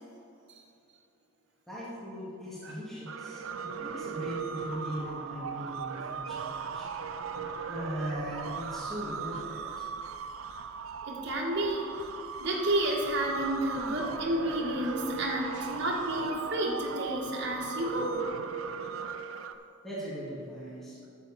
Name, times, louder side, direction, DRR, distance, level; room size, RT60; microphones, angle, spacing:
voice 1, 1.7-6.9 7.7-9.9 19.8-21.0, equal, ahead, -9 dB, 2.1 m, -39 dB
sound 1, 3.1-19.5, right 6 dB, 80° right, 0.5 m, -38 dB
voice 2, 11.0-18.2, right 1 dB, 55° right, -2 dB, 1.6 m, -31 dB
11.0 x 7.2 x 4.2 m, 2.6 s
head